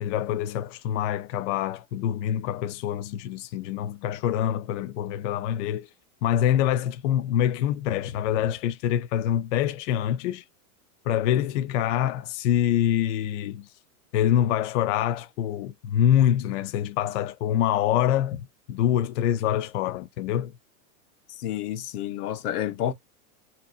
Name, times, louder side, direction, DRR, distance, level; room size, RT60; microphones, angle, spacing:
voice 1, 0.0-5.9 6.2-10.4 11.1-13.7 14.1-20.5, left 10 dB, 55° left, 0.5 m, -25 dB
voice 2, 21.4-22.9, left 11 dB, 90° left, 1.0 m, -29 dB
2.9 x 2.9 x 2.4 m
supercardioid pair, 165°, 44 cm